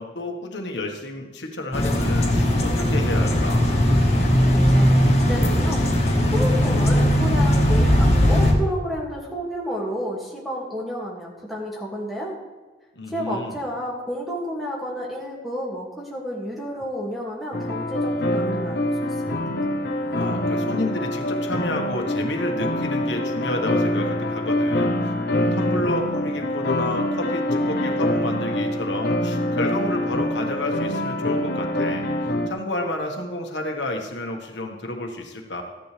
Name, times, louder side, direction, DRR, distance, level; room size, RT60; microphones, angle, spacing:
voice 1, 0.0-3.6 12.9-13.6 20.2-35.6, left 1 dB, 90° left, 2 dB, 1.6 m, -30 dB
sound 1, 1.7-8.5, equal, 35° left, 1.8 m, -18 dB
voice 2, 4.4-5.8 6.3-12.4 13.1-19.1, equal, ahead, -4 dB, 2.2 m, -31 dB
sound 2, 17.5-32.5, left 1 dB, 65° left, 0.9 m, -25 dB
14.0 x 10.5 x 3.4 m, 1.3 s
head